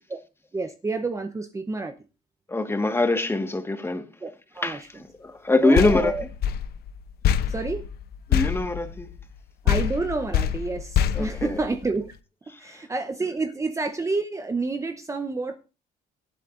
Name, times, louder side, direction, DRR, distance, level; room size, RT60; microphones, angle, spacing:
voice 1, 0.5-1.9 4.2-5.0 5.6-6.3 7.5-7.8 9.6-12.1 12.6-15.6, right 3 dB, 20° right, 0.9 m, -29 dB
voice 2, 2.5-4.0 4.6-4.8 5.2-6.1 8.3-9.1 11.1-11.6, left 2 dB, 15° left, 1.6 m, -23 dB
sound 1, 5.7-9.4 9.7-12.1, left 9 dB, 70° left, 0.8 m, -26 dB
23.5 x 8.3 x 2.6 m
cardioid pair, 110°, 17 cm